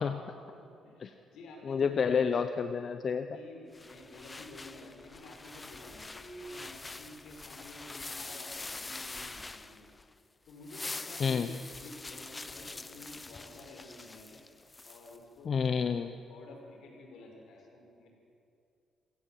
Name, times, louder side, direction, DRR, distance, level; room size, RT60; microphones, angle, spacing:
voice 1, 0.4-2.2 3.3-9.9 10.5-11.4 11.8-14.4 14.8-15.7 16.3-18.1, left 2 dB, 80° left, 1 dB, 5.9 m, -50 dB
voice 2, 1.7-3.3 11.2-11.5 15.4-16.2, left 6 dB, 50° left, 9 dB, 0.9 m, -29 dB
sound 1, 3.7-10.1 10.5-15.2, left 3 dB, 20° left, 0.8 m, -45 dB
27.0 x 16.0 x 7.9 m, 2.6 s
cardioid pair, 90°, 0 cm